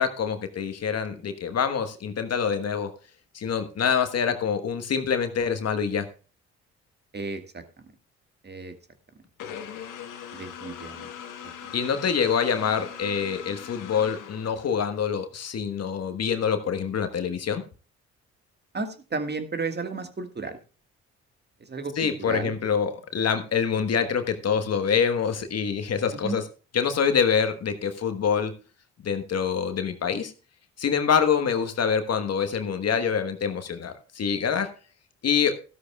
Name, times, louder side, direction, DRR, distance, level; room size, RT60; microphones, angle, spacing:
voice 1, 0.0-2.9 3.3-6.0 11.7-17.6 22.0-26.4 26.7-28.5 29.0-30.3 30.8-34.7 35.2-35.5, left 7 dB, 50° left, 8 dB, 1.4 m, -25 dB
voice 2, 7.1-7.6 8.4-8.7 10.3-11.1 11.4-11.7 18.7-20.6 21.6-22.5 26.1-26.4, right 3 dB, 30° right, 7 dB, 1.8 m, -33 dB
sound 1, 9.4-15.0, left 8 dB, 65° left, 1.5 m, -40 dB
13.5 x 13.0 x 2.3 m, 0.35 s
hypercardioid pair, 50°, 33 cm